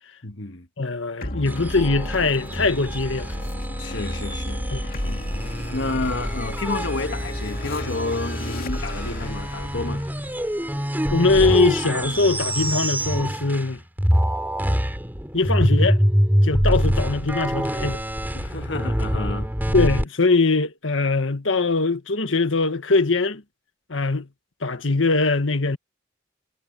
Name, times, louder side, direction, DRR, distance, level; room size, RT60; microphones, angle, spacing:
voice 1, 0.2-0.7 3.8-4.6 4.9-10.1 18.3-19.5, left 3 dB, 65° left, 1.6 m, -30 dB
voice 2, 0.8-3.3 4.7-4.8 11.1-13.8 15.3-16.0 16.4-18.0 19.7-23.4 23.9-24.3 24.6-25.8, left 3 dB, 80° left, 1.6 m, -22 dB
sound 1, 1.2-12.0, left 1 dB, 45° left, 2.4 m, -34 dB
sound 2, 1.5-13.7 14.0-20.0, equal, 10° right, 3.3 m, -25 dB
head